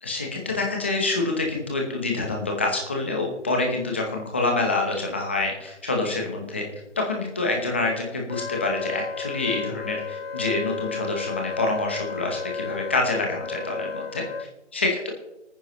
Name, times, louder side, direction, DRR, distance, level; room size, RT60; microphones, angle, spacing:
voice 1, 0.0-6.6 7.0-15.1, left 2 dB, 10° left, 1 dB, 0.7 m, -27 dB
Wind instrument woodwind instrument, 8.3-14.5, left 5 dB, 55° left, 0.7 m, -33 dB
25.0 x 9.5 x 3.0 m, 1.0 s
hypercardioid pair, 165°, 36 cm